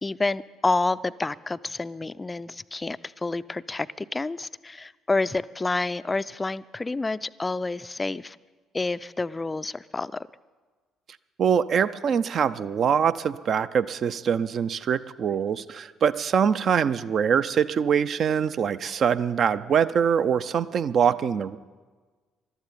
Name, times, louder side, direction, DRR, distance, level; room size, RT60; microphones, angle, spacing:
voice 1, 0.0-8.4 8.7-10.3, left 3 dB, 20° left, 16 dB, 0.4 m, -29 dB
voice 2, 11.4-21.6, right 7 dB, 45° right, 14 dB, 0.5 m, -23 dB
21.0 x 13.0 x 4.1 m, 1.4 s
figure-of-eight pair, 50°, 0 cm